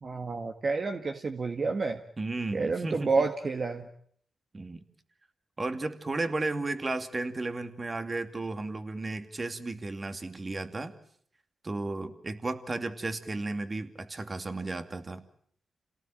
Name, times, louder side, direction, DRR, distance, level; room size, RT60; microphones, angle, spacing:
voice 1, 0.0-2.0 2.5-3.9, right 4 dB, 55° right, 5 dB, 1.7 m, -29 dB
voice 2, 2.2-3.1 4.5-4.8 5.6-11.0 11.6-15.2, right 2 dB, 35° right, 8 dB, 2.5 m, -34 dB
28.0 x 18.0 x 8.9 m, 0.64 s
cardioid pair, 60°, 0 cm